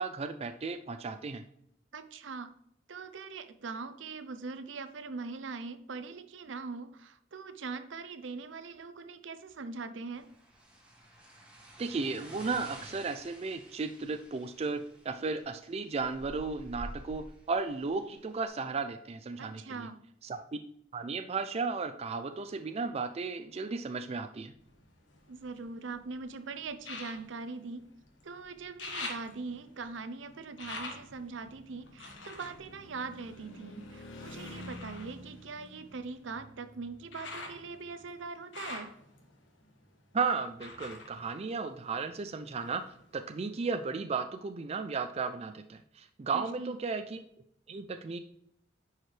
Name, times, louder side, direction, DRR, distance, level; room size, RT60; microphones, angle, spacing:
voice 1, 0.0-1.4 11.8-19.9 20.2-20.6 20.9-24.5 40.1-42.8 43.1-47.2 47.7-48.2, right 4 dB, 35° right, 8 dB, 0.4 m, -34 dB
voice 2, 1.9-2.5 2.9-10.3 19.4-20.0 25.3-27.9 28.2-39.0 46.3-46.7, right 4 dB, 70° right, 10 dB, 0.6 m, -42 dB
sound 1, 10.1-18.4, equal, 5° right, 1.6 m, -50 dB
sound 2, 24.5-24.8 25.3-26.2 26.6-26.7 27.1-27.3 28.0-28.1 28.3-38.1, left 1 dB, 90° left, 1.4 m, -52 dB
sound 3, 24.6-26.0 26.8-28.3 28.6-33.7 34.4-42.2 42.5-43.4 43.8-43.9, left 3 dB, 70° left, 1.6 m, -46 dB
10.0 x 4.7 x 3.2 m, 0.71 s
head